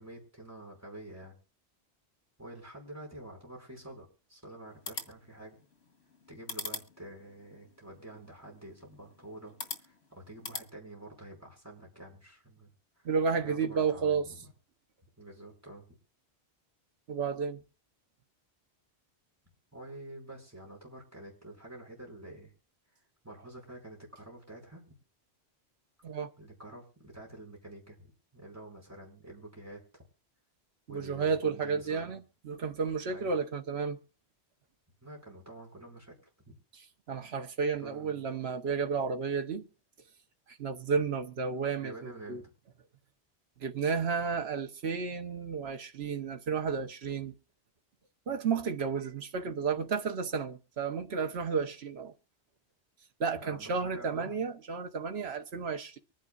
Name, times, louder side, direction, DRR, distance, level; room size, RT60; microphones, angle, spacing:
voice 1, 0.0-1.4 2.4-5.6 6.3-12.7 13.0-13.1 13.4-14.5 15.2-16.0 19.7-22.5 23.2-24.8 26.4-30.0 30.9-32.2 33.1-33.3 35.0-36.2 36.5-36.6 37.8-38.2 41.8-42.5 53.4-54.4, right 1 dB, 15° right, 5.7 m, -48 dB
sound 1, 4.7-10.7, left 3 dB, 75° left, 2.0 m, -45 dB
voice 2, 13.0-14.3 17.1-17.6 26.0-26.3 30.9-34.0 36.7-36.8 37.1-39.7 40.5-42.4 43.6-47.3 48.3-52.1 53.2-56.0, right 5 dB, 75° right, 1.4 m, -32 dB
24.5 x 10.5 x 2.5 m
omnidirectional pair, 1.1 m